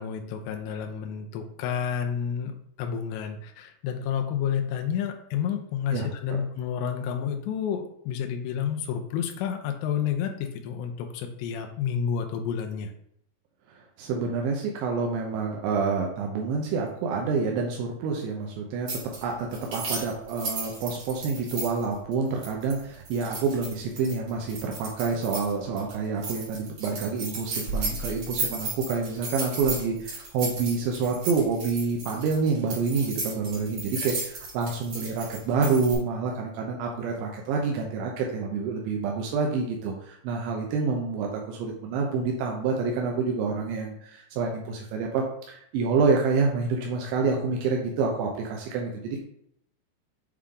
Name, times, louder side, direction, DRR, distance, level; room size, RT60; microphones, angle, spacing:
voice 1, 0.0-2.5 2.8-10.3 10.6-12.9 34.0-34.1 47.2-47.3, left 8 dB, 80° left, 4 dB, 2.9 m, -30 dB
voice 2, 13.7-18.9 19.2-49.2, right 4 dB, 85° right, 0 dB, 3.1 m, -28 dB
sound 1, 18.9-19.2 19.5-25.5 25.8-25.9 26.2-35.9, right 3 dB, 50° right, 3.1 m, -34 dB
8.4 x 3.6 x 3.7 m, 0.72 s
omnidirectional pair, 5.3 m